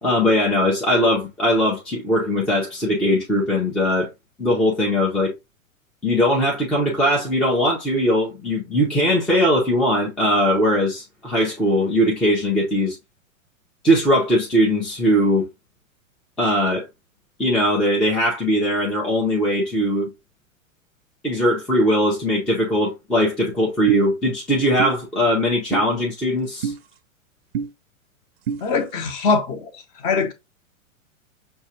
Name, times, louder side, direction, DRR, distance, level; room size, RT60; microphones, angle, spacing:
voice 1, 0.0-4.1 4.4-5.3 6.0-13.0 13.8-15.5 16.4-16.9 17.4-20.1 21.2-26.7, equal, ahead, 0.5 m, -20 dB
sound 1, 23.9-24.0 24.8-24.9 25.7-25.9 26.6-26.8 27.5-27.7 28.5-28.6, right 7 dB, 50° right, 0.5 m, -25 dB
voice 2, 28.6-30.3, left 4 dB, 30° left, 0.8 m, -23 dB
6.2 x 2.2 x 2.7 m
figure-of-eight pair, 105°, 41 cm